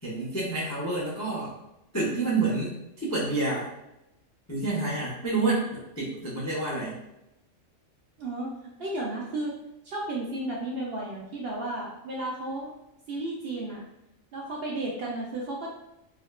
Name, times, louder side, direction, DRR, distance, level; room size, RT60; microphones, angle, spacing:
voice 1, 0.0-1.5 1.9-3.7 4.5-7.0, right 3 dB, 25° left, -6 dB, 0.3 m, -28 dB
voice 2, 8.2-9.5 9.8-12.7 13.1-13.8 14.3-15.7, right 2 dB, 60° right, -3 dB, 0.6 m, -33 dB
3.5 x 2.2 x 2.2 m, 0.89 s
omnidirectional pair, 1.4 m